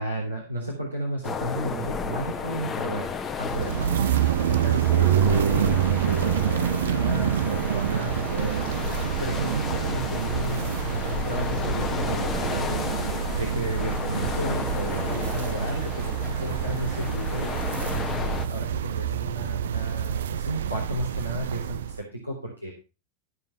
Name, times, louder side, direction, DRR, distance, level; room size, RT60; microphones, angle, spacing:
voice 1, 0.0-3.1 3.4-3.8 4.1-8.7 9.2-12.8 13.4-22.7, right 1 dB, 90° right, -3 dB, 3.9 m, -33 dB
sound 1, 1.2-18.5, left 6 dB, 20° left, 1.2 m, -33 dB
sound 2, 3.5-22.0, right 9 dB, 60° right, 0.6 m, -27 dB
15.5 x 5.5 x 5.9 m, 0.31 s
figure-of-eight pair, 90°, 0 cm